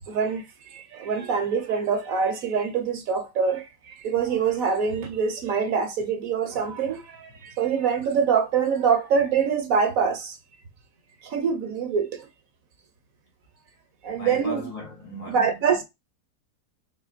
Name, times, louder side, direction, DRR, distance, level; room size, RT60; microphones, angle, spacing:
voice 1, 0.1-0.4 0.7-10.4 11.2-12.3 14.0-14.7 15.3-15.8, right 6 dB, 65° right, 1.1 m, -25 dB
voice 2, 14.1-15.8, left 1 dB, 75° left, 2.2 m, -38 dB
4.4 x 3.5 x 2.4 m
omnidirectional pair, 1.7 m